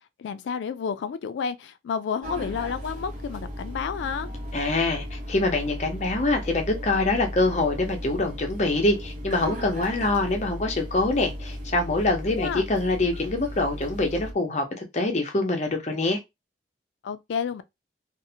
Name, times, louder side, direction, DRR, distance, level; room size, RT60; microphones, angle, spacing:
voice 1, 0.2-4.3 12.3-12.6 17.0-17.6, left 6 dB, 80° left, 0.3 m, -30 dB
sound 1, 2.2-14.3, equal, 40° right, 0.7 m, -36 dB
voice 2, 4.5-16.2, left 2 dB, 40° left, 0.6 m, -25 dB
2.6 x 2.0 x 2.7 m
head